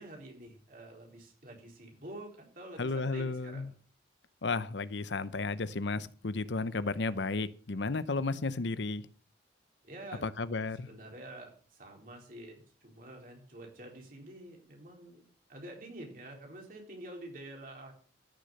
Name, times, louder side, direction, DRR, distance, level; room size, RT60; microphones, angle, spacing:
voice 1, 0.0-3.7 9.8-10.3 10.6-15.2 15.5-17.9, right 1 dB, 50° right, 4.1 m, -48 dB
voice 2, 2.8-3.7 4.4-9.0 10.2-10.9, left 3 dB, 75° left, 0.8 m, -33 dB
14.0 x 6.6 x 6.5 m
head